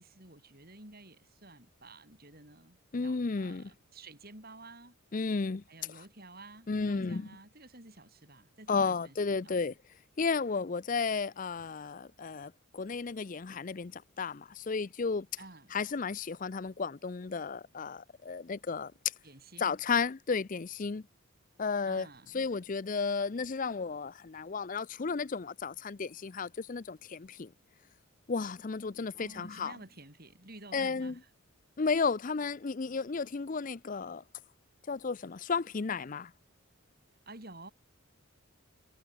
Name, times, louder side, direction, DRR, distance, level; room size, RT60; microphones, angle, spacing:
voice 1, 0.0-2.8 3.0-5.0 5.7-9.2 9.4-9.6 15.4-15.7 19.2-19.7 21.9-22.4 29.2-31.3 37.3-37.7, right 2 dB, 45° right, 7.3 m, -52 dB
voice 2, 2.9-3.6 5.1-5.6 6.7-7.3 8.7-9.7 10.2-15.3 15.7-18.9 19.6-21.0 21.6-22.1 22.3-27.5 28.3-29.7 30.7-31.1 31.8-34.2 34.9-36.3, left 4 dB, 35° left, 0.5 m, -33 dB
head